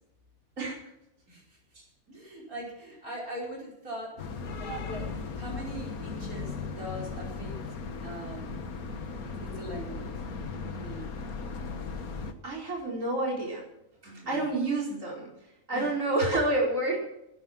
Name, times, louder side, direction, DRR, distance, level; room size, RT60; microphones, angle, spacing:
voice 1, 1.3-1.6 2.1-4.2 4.5-8.5 9.2-10.1 10.7-11.1 14.2-14.5 15.7-15.9, right 1 dB, 85° right, -4 dB, 5.5 m, -41 dB
sound 1, 4.2-12.3, left 4 dB, 85° left, 1.8 m, -37 dB
voice 2, 12.4-13.7 14.0-15.3 15.7-17.0, right 2 dB, 65° right, -4 dB, 5.3 m, -29 dB
19.5 x 9.9 x 5.9 m, 0.83 s
omnidirectional pair, 1.5 m